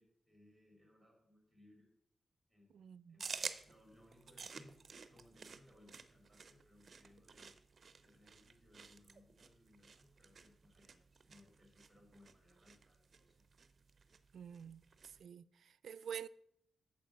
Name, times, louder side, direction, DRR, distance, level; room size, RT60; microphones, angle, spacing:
voice 1, 0.0-1.9 2.5-7.5 8.0-13.4, left 1 dB, ahead, 3.3 m, -66 dB
voice 2, 2.7-3.2 14.3-14.9 15.2-16.3, right 8 dB, 90° right, 0.4 m, -48 dB
sound 1, 3.2-15.2, right 5 dB, 40° right, 0.6 m, -52 dB
9.1 x 7.3 x 6.3 m
wide cardioid pair, 175°, 0 cm